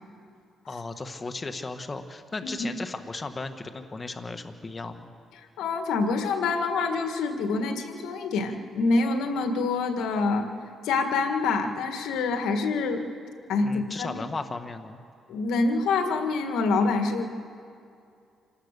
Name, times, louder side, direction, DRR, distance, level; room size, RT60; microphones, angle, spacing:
voice 1, 0.7-5.1 13.6-15.0, left 3 dB, 30° left, 7 dB, 1.4 m, -36 dB
voice 2, 5.6-10.5 10.8-13.1 13.5-14.1 15.3-17.3, left 3 dB, 85° left, 6 dB, 1.8 m, -26 dB
27.0 x 17.5 x 6.7 m, 2.4 s
cardioid pair, 90°, 0 cm